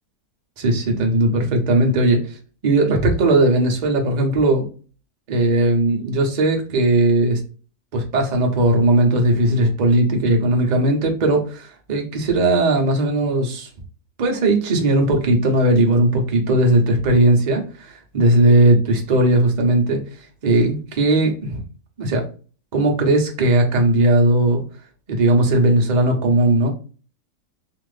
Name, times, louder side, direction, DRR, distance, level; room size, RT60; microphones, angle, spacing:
voice 1, 0.6-2.2 2.6-4.6 5.3-7.4 7.9-13.7 14.2-20.0 20.4-21.6 22.0-22.2 22.7-24.6 25.1-26.7, right 1 dB, 55° right, 2 dB, 0.4 m, -17 dB
2.6 x 2.4 x 3.2 m, 0.37 s
omnidirectional pair, 1.7 m